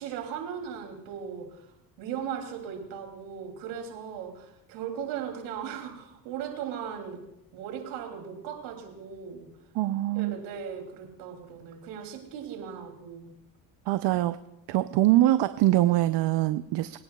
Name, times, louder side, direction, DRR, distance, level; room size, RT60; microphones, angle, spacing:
voice 1, 0.0-1.7 2.0-7.2 7.5-9.5 10.1-13.3, right 8 dB, 85° right, 3 dB, 2.9 m, -38 dB
voice 2, 9.7-10.4 13.9-14.4 14.7-17.0, right 15 dB, 60° right, 12 dB, 0.6 m, -23 dB
24.0 x 9.5 x 2.3 m, 0.87 s
supercardioid pair, 75°, 47 cm